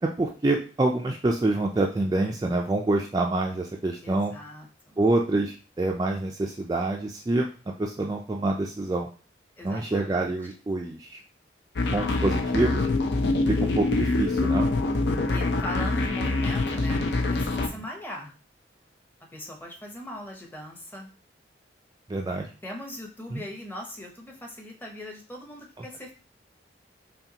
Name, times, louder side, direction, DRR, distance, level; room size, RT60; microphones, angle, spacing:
voice 1, 0.0-4.3 5.0-7.5 7.8-9.1 9.6-11.2 11.9-12.9 13.5-14.7 22.1-22.5 23.3-23.4, right 2 dB, 20° right, 0 dB, 0.3 m, -26 dB
voice 2, 4.0-5.0 9.6-10.3 15.3-18.3 19.3-21.1 22.6-26.1, left 1 dB, 10° left, 1 dB, 0.7 m, -40 dB
sound 1, 11.8-17.7, left 2 dB, 75° left, 0.5 m, -25 dB
5.5 x 2.3 x 2.8 m, 0.37 s
head